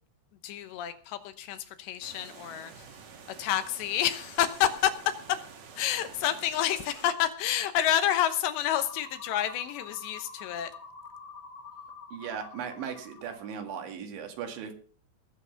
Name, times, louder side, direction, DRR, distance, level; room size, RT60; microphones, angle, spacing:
voice 1, 0.4-2.9 3.4-4.9 5.8-10.7, left 11 dB, 75° left, 11 dB, 3.0 m, -29 dB
sound 1, 2.0-7.1, right 6 dB, 50° right, 2.4 m, -49 dB
sound 2, 8.8-13.9, left 5 dB, 55° left, 1.4 m, -47 dB
voice 2, 12.1-14.7, right 7 dB, 80° right, 5 dB, 4.2 m, -37 dB
19.5 x 8.0 x 5.7 m, 0.42 s
omnidirectional pair, 5.2 m